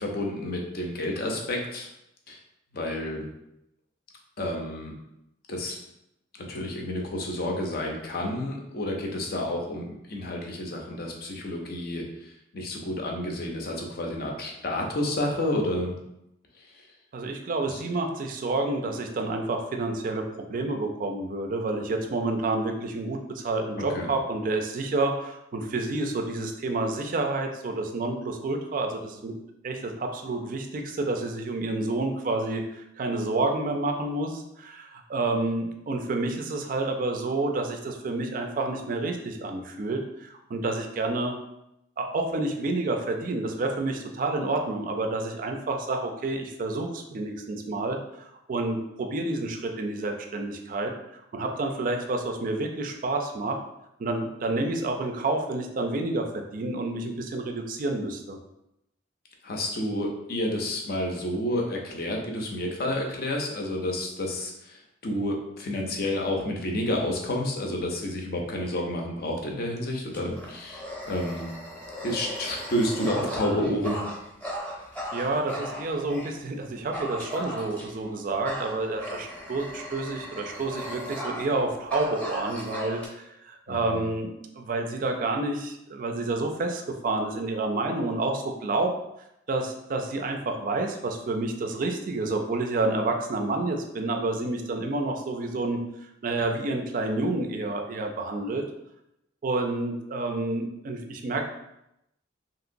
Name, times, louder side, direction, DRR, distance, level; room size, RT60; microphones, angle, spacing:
voice 1, 0.0-1.9 2.3-2.4 2.7-3.3 4.4-4.9 5.5-5.8 6.5-16.0 17.7-17.8 23.8-24.1 59.4-71.5 72.0-74.0 83.7-84.0, left 1 dB, 50° left, 0 dB, 0.6 m, -30 dB
voice 2, 17.1-20.2 20.5-29.3 29.6-41.3 42.0-53.6 54.0-58.4 75.1-88.9 89.5-98.6 99.4-101.5, right 2 dB, 45° right, 4 dB, 0.4 m, -29 dB
Dog, 70.1-76.3 76.9-78.0 78.5-81.6 81.9-83.1, equal, 5° left, 0.7 m, -37 dB
2.8 x 2.8 x 2.5 m, 0.83 s
head